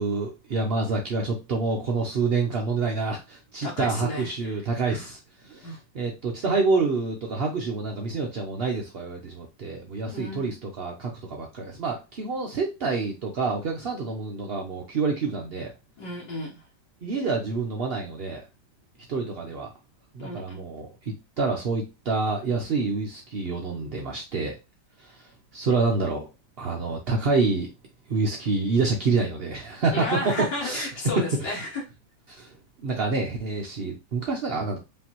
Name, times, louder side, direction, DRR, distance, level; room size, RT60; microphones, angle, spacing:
voice 1, 0.0-15.7 17.0-18.4 19.1-19.7 20.1-24.5 25.0-26.3 26.6-27.7 28.1-30.9 31.4-31.6 32.3-34.8, right 4 dB, 70° right, 1 dB, 0.5 m, -27 dB
voice 2, 3.6-5.0 5.6-5.8 10.1-10.5 16.0-16.6 20.2-20.7 29.9-31.8, left 2 dB, 75° left, -4 dB, 1.7 m, -33 dB
5.2 x 2.8 x 2.9 m, 0.27 s
omnidirectional pair, 2.0 m